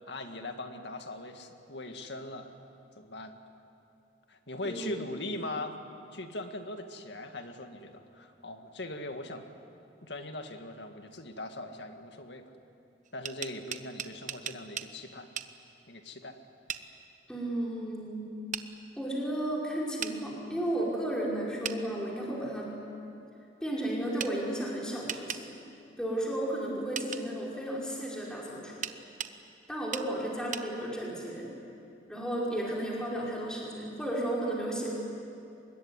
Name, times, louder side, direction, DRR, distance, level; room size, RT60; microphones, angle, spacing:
voice 1, 0.1-2.5 3.0-3.4 4.3-5.8 6.1-9.5 10.0-12.4 13.1-15.3 15.9-16.4, left 1 dB, 75° left, 6 dB, 2.1 m, -40 dB
sound 1, 13.1-14.9 15.4-15.5 16.7-16.9 18.5-18.7 20.0-20.2 21.6-21.8 24.2-24.3 25.1-25.4 27.0-27.2 28.8-29.4 29.9-30.1 30.5-30.7, right 9 dB, 45° right, 0.9 m, -36 dB
voice 2, 17.3-18.3 19.0-22.8 23.6-25.5 26.0-28.8 29.7-31.5 32.1-34.9, right 1 dB, 5° left, -5 dB, 5.3 m, -33 dB
24.5 x 21.5 x 9.8 m, 2.7 s
head